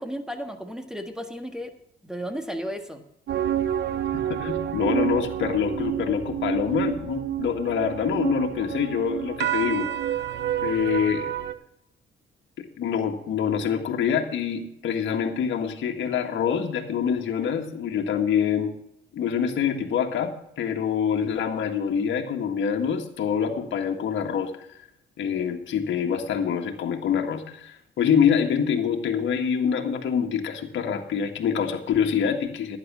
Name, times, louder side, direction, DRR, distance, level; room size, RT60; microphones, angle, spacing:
voice 1, 0.0-1.7 2.0-3.0, equal, 5° right, 6 dB, 1.6 m, -34 dB
sound 1, 3.3-11.5, right 10 dB, 60° right, 0.8 m, -28 dB
voice 2, 4.1-9.9 10.6-11.3 12.6-18.7 19.1-24.5 25.2-32.8, left 7 dB, 70° left, 3 dB, 1.7 m, -25 dB
11.5 x 9.7 x 6.2 m, 0.76 s
cardioid pair, 90°, 20 cm